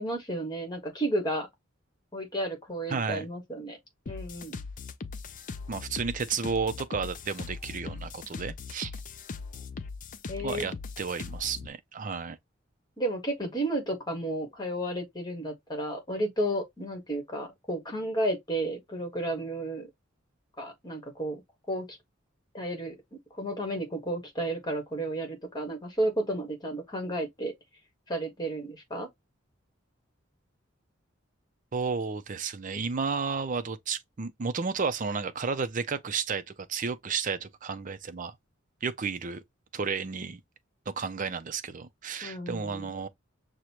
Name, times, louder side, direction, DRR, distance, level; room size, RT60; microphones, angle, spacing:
voice 1, 0.0-1.5 2.1-3.8 4.1-4.6 10.3-10.7 13.0-19.9 20.6-21.4 21.7-22.0 22.5-27.5 28.1-29.1 42.2-42.9, right 1 dB, 20° left, 1.4 m, -32 dB
voice 2, 2.9-3.3 5.7-8.9 10.4-12.4 31.7-38.4 38.8-39.4 39.7-40.4 40.9-43.1, right 5 dB, 40° right, 0.5 m, -32 dB
sound 1, 4.1-11.7, left 4 dB, 40° left, 0.4 m, -40 dB
6.4 x 2.1 x 2.9 m
head